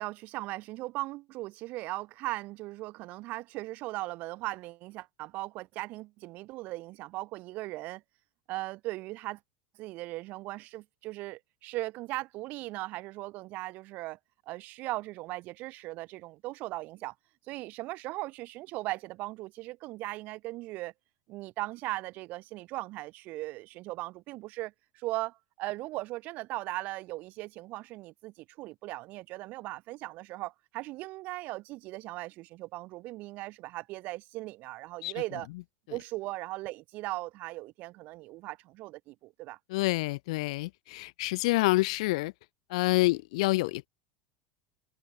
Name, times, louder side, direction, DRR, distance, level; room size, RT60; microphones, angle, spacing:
voice 1, 0.0-8.0 8.5-9.4 9.8-14.2 14.5-17.1 17.5-20.9 21.3-35.5 35.9-39.6, right 19 dB, 45° right, 7.4 m, -38 dB
voice 2, 39.7-42.3 42.7-43.9, left 21 dB, 55° left, 3.7 m, -27 dB
figure-of-eight pair, 80°, 4 cm